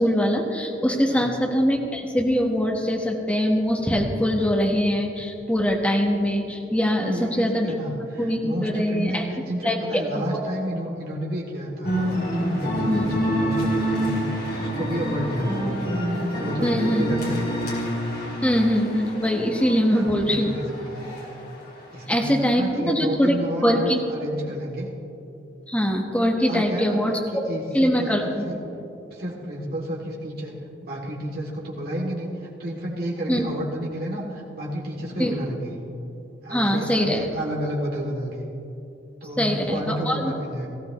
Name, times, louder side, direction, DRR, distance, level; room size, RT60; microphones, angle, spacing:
voice 1, 0.0-7.7 8.2-9.2 9.6-10.4 12.9-13.1 16.6-17.1 18.4-20.6 22.1-23.3 23.6-24.0 25.7-27.2 27.7-28.4 33.3-33.5 35.2-35.3 36.5-37.3 39.4-40.3, equal, 5° left, 0 dB, 1.3 m, -22 dB
voice 2, 1.1-1.4 7.0-9.2 9.5-11.9 12.3-15.7 16.3-17.5 19.9-21.1 21.9-24.9 26.5-27.0 27.3-28.6 29.1-30.5 30.8-35.7 36.4-38.5 39.2-40.7, equal, 50° right, -3 dB, 2.8 m, -31 dB
sound 1, 11.8-21.3, equal, 55° left, 2.6 m, -27 dB
18.5 x 15.0 x 3.1 m, 2.8 s
head